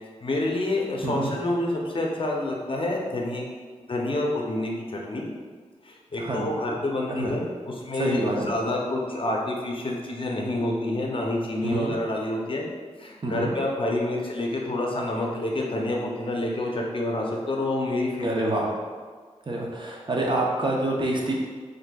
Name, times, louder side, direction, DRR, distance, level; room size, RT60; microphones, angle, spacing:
voice 1, 0.2-3.5 3.9-5.3 5.8-12.6 13.0-18.4, left 1 dB, 45° left, -1 dB, 0.6 m, -28 dB
voice 2, 1.0-1.3 6.2-6.5 7.1-7.3 7.9-8.5 11.6-11.9 13.2-13.5 18.2-18.7 19.5-21.3, right 2 dB, 40° right, -2 dB, 0.6 m, -27 dB
4.2 x 2.6 x 2.3 m, 1.5 s
wide cardioid pair, 65°, 12 cm